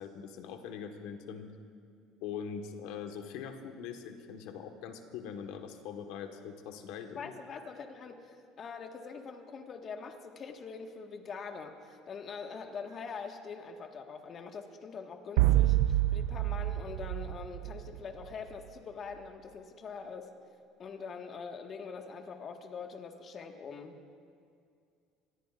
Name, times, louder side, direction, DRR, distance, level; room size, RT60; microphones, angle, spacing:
voice 1, 0.0-1.5 2.2-7.3, left 7 dB, 80° left, 5 dB, 1.5 m, -42 dB
voice 2, 7.1-20.3 20.8-24.0, left 5 dB, 40° left, 4 dB, 1.7 m, -43 dB
sound 1, 15.4-18.2, right 15 dB, 85° right, 0.3 m, -27 dB
26.0 x 19.5 x 2.6 m, 2.3 s
supercardioid pair, 105°, 0 cm